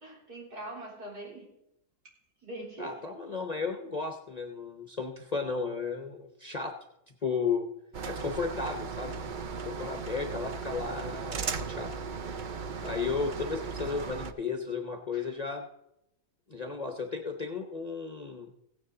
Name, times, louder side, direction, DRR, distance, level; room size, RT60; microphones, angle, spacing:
voice 1, 0.0-1.5 2.4-3.0 9.8-9.9 15.1-15.3, right 1 dB, 75° right, -4 dB, 4.4 m, -43 dB
voice 2, 2.8-6.7 7.2-7.7 8.1-9.2 9.6-11.9 12.8-15.7 16.5-18.5, left 5 dB, 30° left, 4 dB, 0.8 m, -34 dB
sound 1, 7.9-14.3, right 5 dB, 60° right, 0.5 m, -37 dB
16.5 x 9.6 x 3.8 m, 0.82 s
omnidirectional pair, 1.7 m